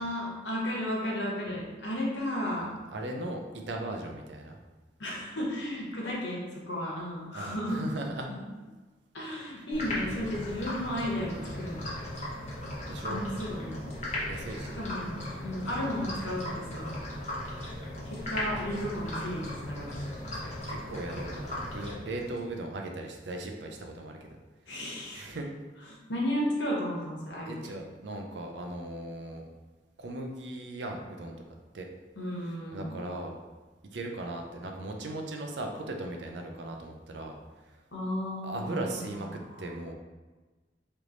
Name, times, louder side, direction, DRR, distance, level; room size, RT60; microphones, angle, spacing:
voice 1, 0.0-2.7 5.0-7.8 8.3-8.4 9.1-11.9 13.1-13.9 14.7-16.9 18.3-20.1 24.7-25.3 26.1-27.5 32.2-32.9 37.9-39.0, equal, 90° left, -4 dB, 1.2 m, -33 dB
voice 2, 2.6-4.6 7.3-8.3 8.6-8.7 9.6-9.7 12.9-13.3 14.3-14.8 20.4-24.3 25.1-25.5 27.5-29.5 30.0-31.3 31.7-31.9 32.7-33.4 33.9-37.4 38.4-39.9, right 2 dB, 75° right, 2 dB, 0.6 m, -38 dB
sound 1, 9.7-22.4, left 1 dB, 40° left, 1.0 m, -37 dB
3.3 x 3.1 x 3.9 m, 1.3 s
head